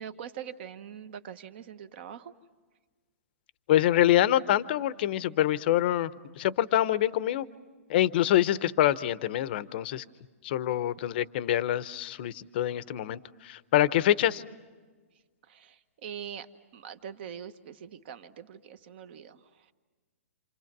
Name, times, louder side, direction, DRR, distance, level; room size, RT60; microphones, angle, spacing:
voice 1, 0.0-2.3 15.4-19.7, right 8 dB, 45° right, 11 dB, 1.1 m, -43 dB
voice 2, 3.7-6.1 6.4-7.5 7.9-10.0 10.4-14.4, left 12 dB, 40° left, 16 dB, 0.7 m, -25 dB
28.0 x 27.5 x 6.0 m, 1.4 s
hypercardioid pair, 160°, 8 cm